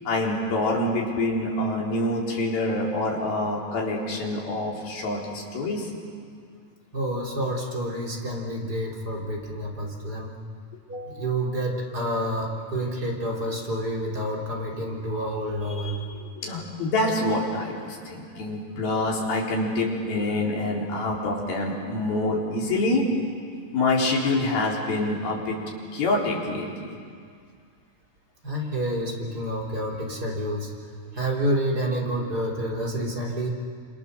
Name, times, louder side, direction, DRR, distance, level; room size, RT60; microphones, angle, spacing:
voice 1, 0.1-5.9 16.2-23.1 23.7-25.6 25.9-27.0, left 2 dB, 65° left, -2 dB, 5.7 m, -26 dB
voice 2, 6.9-10.3 10.9-16.2 18.3-18.4 28.4-30.7 31.1-33.5, right 1 dB, 25° right, -2 dB, 3.5 m, -29 dB
28.5 x 27.0 x 6.9 m, 2.2 s
omnidirectional pair, 4.7 m